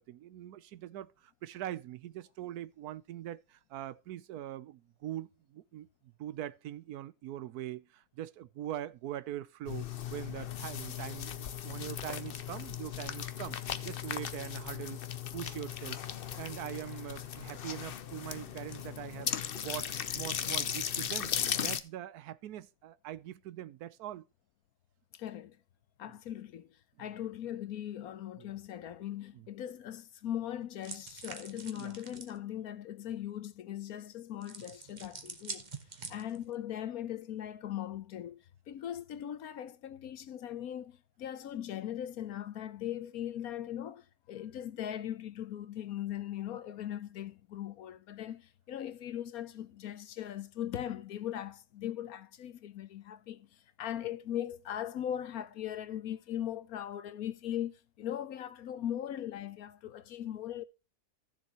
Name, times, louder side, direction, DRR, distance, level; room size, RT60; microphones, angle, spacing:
voice 1, 0.0-13.6 13.8-15.0 15.3-16.0 16.4-21.3 21.6-24.2 26.0-26.1 27.0-27.1 28.4-28.5 29.3-29.5 31.8-31.9 36.0-36.2, right 12 dB, 85° right, 1.2 m, -42 dB
sound 1, 9.7-21.8, left 9 dB, 50° left, 0.7 m, -37 dB
voice 2, 25.1-25.6 26.0-26.7 27.0-35.6 36.1-38.4 38.7-60.6, left 11 dB, 75° left, 1.3 m, -39 dB
sound 2, 30.8-32.4 34.4-36.5, right 4 dB, 30° right, 1.2 m, -45 dB
15.0 x 7.2 x 2.9 m
omnidirectional pair, 1.6 m